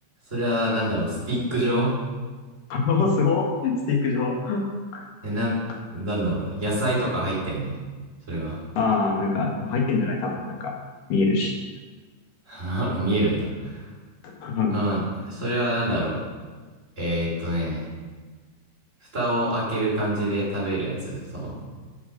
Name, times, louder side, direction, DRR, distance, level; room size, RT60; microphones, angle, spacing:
voice 1, 0.3-2.0 5.2-5.6 5.9-7.8 8.3-8.6 12.5-13.8 14.7-16.2 17.0-17.9 19.1-21.6, right 1 dB, 20° right, -7 dB, 3.9 m, -26 dB
voice 2, 2.7-4.6 4.9-5.0 8.8-10.7 11.1-11.5 14.4-14.7, left 4 dB, 90° left, 0 dB, 3.2 m, -24 dB
11.5 x 7.2 x 5.2 m, 1.4 s
omnidirectional pair, 3.7 m